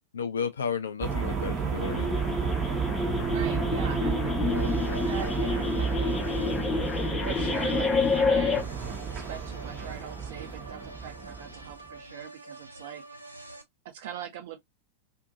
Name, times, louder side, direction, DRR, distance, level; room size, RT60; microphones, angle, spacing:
voice 1, 0.0-2.1, left 6 dB, 70° left, 0.6 m, -32 dB
sound 1, 1.0-11.9, right 6 dB, 30° right, 0.9 m, -31 dB
sound 2, 1.8-8.6, left 4 dB, 20° left, 0.6 m, -28 dB
voice 2, 3.3-6.5 7.2-8.6 9.1-13.0 13.8-14.6, right 9 dB, 55° right, 0.8 m, -42 dB
sound 3, 4.4-13.6, right 2 dB, 85° right, 0.5 m, -45 dB
2.7 x 2.6 x 2.4 m
figure-of-eight pair, 90°, 0 cm